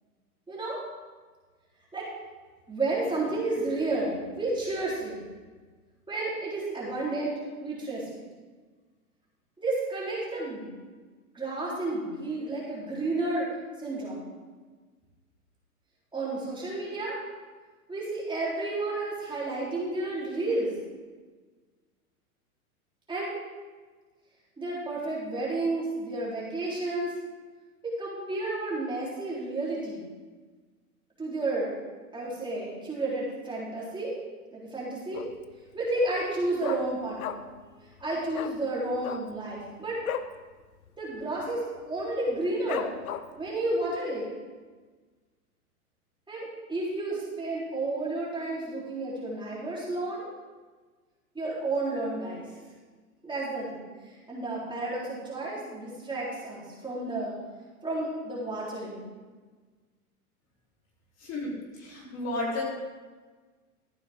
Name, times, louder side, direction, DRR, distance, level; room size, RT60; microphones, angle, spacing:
voice 1, 0.5-0.8 1.9-2.1 2.7-5.2 6.1-8.2 9.6-10.7 11.3-13.5 13.8-14.2 16.1-17.2 17.9-20.7 23.1-23.3 24.6-27.1 27.8-30.1 31.2-31.8 32.1-34.1 34.5-35.3 35.7-37.4 38.0-40.0 41.0-42.9 43.4-44.2 46.3-50.3 51.3-52.6 53.2-57.3 57.8-59.0, right 2 dB, 10° right, -7 dB, 3.9 m, -31 dB
Dog, 35.1-35.6 35.9-36.0 36.2-37.7 37.9-38.0 38.3-38.6 38.9-40.4 40.7-40.9 41.1-41.6 42.0-42.1 42.7-43.5 44.0-44.1, left 9 dB, 70° left, 0.8 m, -35 dB
voice 2, 61.2-62.6, left 2 dB, 35° left, -4 dB, 3.6 m, -33 dB
13.5 x 9.6 x 3.8 m, 1.4 s
hypercardioid pair, 105°, 44 cm